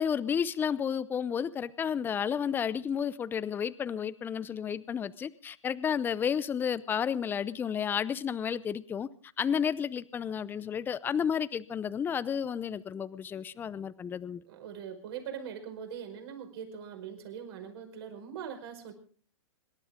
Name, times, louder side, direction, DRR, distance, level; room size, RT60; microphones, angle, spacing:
voice 1, 0.0-9.1 9.4-14.4, left 7 dB, 15° left, 17 dB, 0.6 m, -31 dB
voice 2, 14.5-18.9, right 8 dB, 55° right, 5 dB, 5.3 m, -42 dB
26.5 x 12.5 x 3.7 m, 0.44 s
hypercardioid pair, 130°, 16 cm